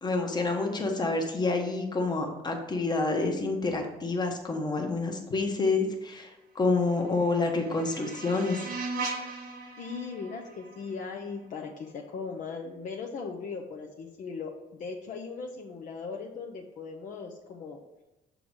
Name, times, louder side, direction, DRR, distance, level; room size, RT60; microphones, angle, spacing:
voice 1, 0.0-6.3 6.5-8.6, left 3 dB, 25° left, 3 dB, 1.1 m, -28 dB
sound 1, 6.7-11.8, right 3 dB, 60° right, 1.0 m, -39 dB
voice 2, 9.8-17.8, left 5 dB, 50° left, 0 dB, 0.7 m, -38 dB
6.1 x 3.8 x 4.7 m, 0.99 s
cardioid pair, 110°, 17 cm